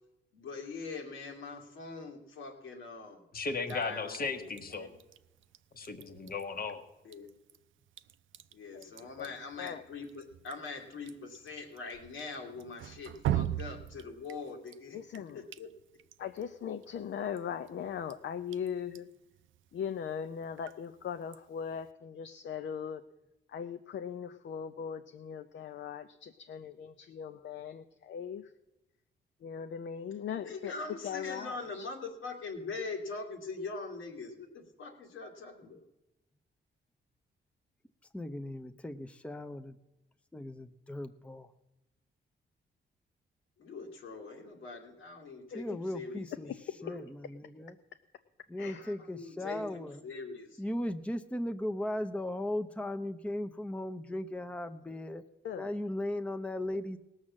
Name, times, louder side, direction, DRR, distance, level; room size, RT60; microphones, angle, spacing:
voice 1, 0.3-3.2 3.7-4.9 7.0-7.3 8.5-15.0 15.3-15.7 30.4-35.8 43.6-46.6 46.8-47.0 48.7-50.6, left 4 dB, 85° left, 2 dB, 2.2 m, -43 dB
voice 2, 3.3-4.9 5.7-6.8, left 4 dB, 50° left, 7 dB, 1.4 m, -36 dB
Drip, 3.6-21.9, right 12 dB, 75° right, 0.5 m, -43 dB
voice 3, 9.2-9.8 14.9-15.5 16.2-19.1 19.7-23.0 23.5-28.4 29.4-30.7 31.0-31.9 45.7-45.8 48.6-48.9 55.4-55.7, left 8 dB, 65° left, 8 dB, 0.6 m, -39 dB
voice 4, 38.1-39.8 40.3-41.5 45.5-46.5 46.8-47.7 48.5-50.0 50.6-55.2 55.6-57.0, left 1 dB, 5° left, 8 dB, 0.6 m, -37 dB
17.5 x 6.4 x 7.4 m, 0.98 s
cardioid pair, 85°, 20 cm